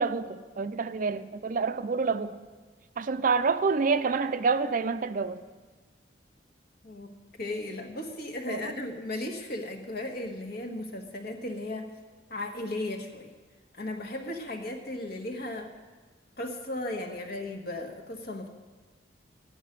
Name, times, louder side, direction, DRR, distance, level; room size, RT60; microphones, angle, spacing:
voice 1, 0.0-2.4 3.0-5.4 8.5-8.7, right 4 dB, 45° right, 0.5 m, -28 dB
voice 2, 6.8-11.9 12.3-13.3 13.8-15.7 16.4-18.5, left 1 dB, 55° left, 1.4 m, -36 dB
13.0 x 10.0 x 6.5 m
head